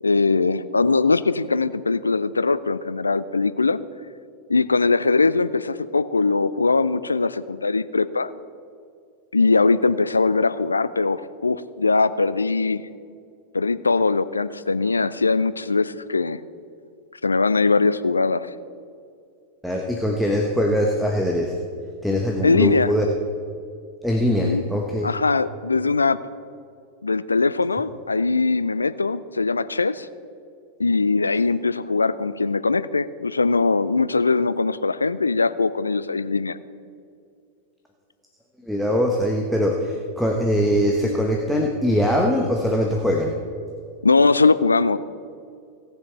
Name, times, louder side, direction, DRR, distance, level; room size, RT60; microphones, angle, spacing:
voice 1, 0.0-3.8 4.5-8.3 9.3-12.9 13.5-16.4 17.2-18.5 22.4-22.9 24.4-24.6 25.0-26.2 27.0-30.1 30.8-36.6 44.0-45.0, left 3 dB, 80° left, 15 dB, 0.4 m, -21 dB
voice 2, 19.6-21.6 22.0-23.1 24.0-25.1 38.6-43.4, equal, ahead, 0 dB, 1.1 m, -22 dB
17.5 x 6.7 x 4.5 m, 2.3 s
figure-of-eight pair, 90°, 0 cm